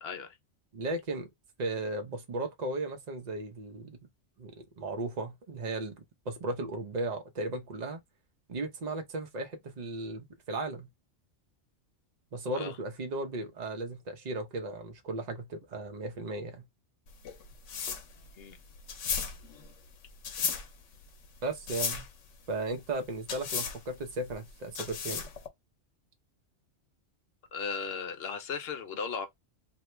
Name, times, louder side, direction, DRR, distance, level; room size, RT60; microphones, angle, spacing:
voice 1, 0.0-0.3 12.6-12.8 18.4-18.6 27.5-29.3, left 5 dB, 60° left, 0.8 m, -36 dB
voice 2, 0.7-1.3 1.6-4.0 4.4-8.0 8.5-10.9 12.3-16.6 21.4-22.0 22.5-25.3, right 2 dB, 40° right, 0.8 m, -36 dB
sound 1, 17.1-25.5, left 6 dB, 80° left, 1.1 m, -36 dB
2.8 x 2.3 x 3.2 m
omnidirectional pair, 1.2 m